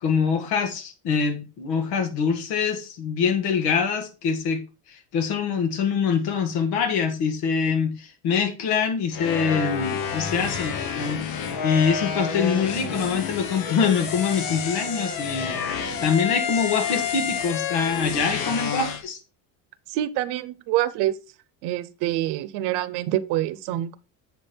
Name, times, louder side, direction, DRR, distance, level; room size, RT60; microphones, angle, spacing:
voice 1, 0.0-4.6 4.9-19.2, left 6 dB, 80° left, 1.9 m, -24 dB
sound 1, 9.1-19.0, left 6 dB, 60° left, 1.5 m, -29 dB
voice 2, 19.9-21.2 21.6-24.0, right 14 dB, 85° right, 0.8 m, -26 dB
7.5 x 5.3 x 4.4 m
cardioid pair, 155°, 39 cm